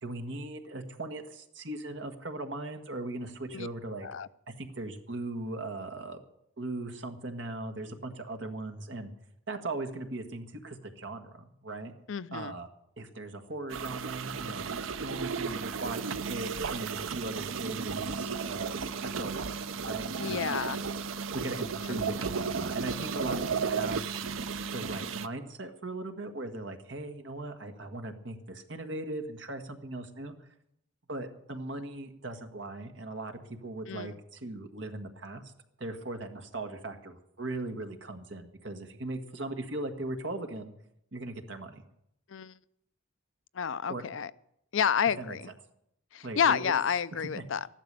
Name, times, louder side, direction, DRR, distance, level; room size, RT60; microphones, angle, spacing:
voice 1, 0.0-4.1 4.6-6.2 6.6-9.1 9.5-11.9 12.3-12.7 13.0-14.7 15.0-24.1 24.7-30.3 31.1-35.4 35.8-40.7 41.1-41.8 43.9-44.0 45.2-45.4 46.2-46.7 47.3-47.4, right 2 dB, 60° right, 5 dB, 1.6 m, -39 dB
voice 2, 12.1-12.5 20.2-20.8 33.9-34.1 42.3-42.5 43.5-44.3 44.7-45.5 46.1-47.7, left 7 dB, 70° left, 16 dB, 0.5 m, -29 dB
sound 1, 13.7-25.3, right 5 dB, 75° right, 0.6 m, -34 dB
14.0 x 12.0 x 6.8 m, 0.76 s
head